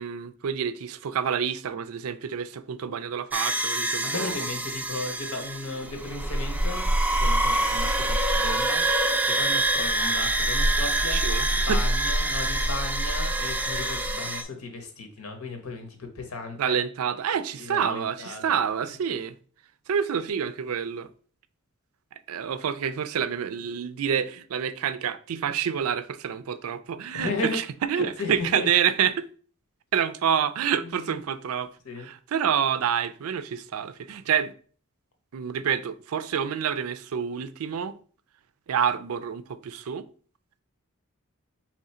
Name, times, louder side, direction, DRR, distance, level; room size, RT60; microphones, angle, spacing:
voice 1, 0.0-4.4 11.1-11.8 16.6-19.4 19.9-21.1 22.3-29.3 29.9-34.5 35.3-38.0 38.7-40.1, right 8 dB, 75° right, 0.4 m, -28 dB
sound 1, 3.3-14.4, right 1 dB, 5° right, 0.3 m, -25 dB
voice 2, 4.0-11.2 11.7-16.8 17.5-18.6 27.1-27.6 27.9-28.7 30.8-31.2 31.8-32.1, left 3 dB, 85° left, 1.1 m, -35 dB
3.7 x 3.1 x 4.2 m
head